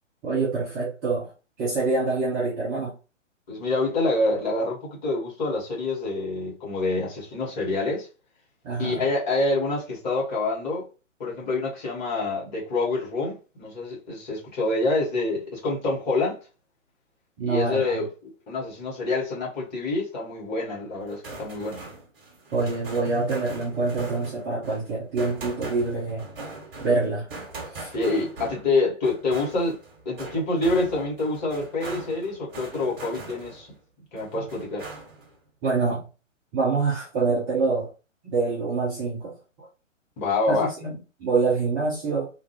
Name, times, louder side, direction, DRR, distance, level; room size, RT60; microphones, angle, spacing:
voice 1, 0.2-1.3 1.6-2.9 8.6-9.1 17.4-18.1 22.5-26.3 26.8-27.3 27.7-27.9 34.3-34.4 35.6-36.0 36.5-37.9 38.2-39.7 40.5-42.3, right 3 dB, 15° right, 0.6 m, -26 dB
voice 2, 3.5-8.1 8.8-10.9 11.2-16.4 17.4-18.1 18.5-21.8 27.9-29.8 30.1-33.7 34.1-34.9 40.2-40.7, left 2 dB, 35° left, 1.7 m, -26 dB
sound 1, 21.0-33.8 34.2-35.3, right 3 dB, 45° right, 1.4 m, -41 dB
2.9 x 2.5 x 3.0 m
figure-of-eight pair, 125°, 38 cm